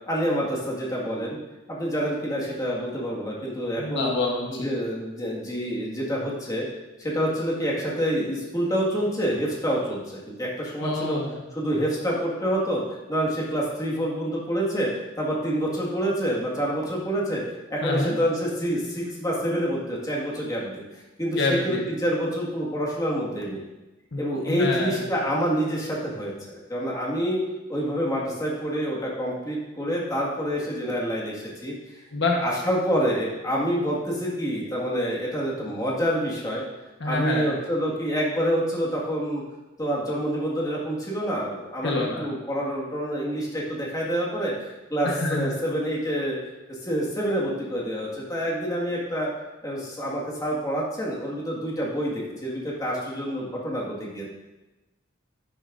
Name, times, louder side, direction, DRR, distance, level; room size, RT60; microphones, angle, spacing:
voice 1, 0.1-1.4 1.7-4.1 4.5-6.7 7.0-11.2 11.5-14.9 15.2-17.4 17.7-23.6 24.2-27.4 27.7-32.0 32.4-36.6 37.0-39.4 39.8-41.9 42.2-44.5 44.9-46.4 46.7-49.3 49.6-54.3, equal, 20° left, -5 dB, 1.9 m, -27 dB
voice 2, 3.8-4.7 10.8-11.4 17.8-18.2 21.3-21.8 24.1-25.0 32.1-32.4 37.0-37.5 41.8-42.3 45.0-45.6, left 2 dB, 60° left, -1 dB, 1.3 m, -27 dB
11.0 x 10.5 x 2.6 m, 1.1 s
head